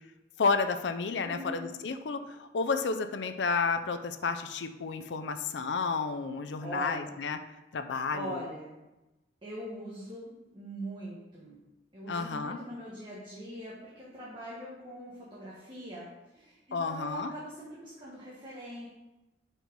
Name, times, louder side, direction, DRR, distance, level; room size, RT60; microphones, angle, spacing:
voice 1, 0.4-7.4 7.7-8.4 12.1-12.6 16.7-17.3, left 4 dB, 85° left, 8 dB, 0.5 m, -31 dB
voice 2, 1.1-1.7 6.6-7.1 8.1-8.8 9.4-11.5 11.9-18.9, right 1 dB, 30° right, -6 dB, 1.1 m, -42 dB
4.5 x 4.5 x 5.2 m, 1.0 s
head